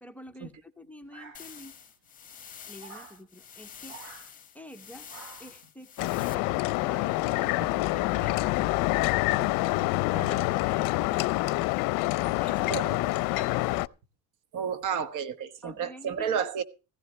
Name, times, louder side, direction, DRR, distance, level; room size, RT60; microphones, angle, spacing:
voice 1, 0.0-1.8 2.7-4.0 4.5-5.1 5.4-9.5 12.2-12.8 13.3-13.9 15.6-16.5, left 1 dB, 5° left, 0.8 m, -47 dB
sound 1, 1.1-1.8 2.8-3.2 3.9-4.3 5.1-5.6, right 5 dB, 85° right, 4.9 m, -48 dB
sound 2, 1.3-6.3, left 8 dB, 25° left, 1.9 m, -48 dB
sound 3, 6.0-13.9, left 20 dB, 75° left, 0.6 m, -27 dB
voice 2, 12.7-13.1 14.5-16.6, right 7 dB, 65° right, 1.4 m, -32 dB
15.5 x 13.5 x 3.2 m
cardioid pair, 135°, 33 cm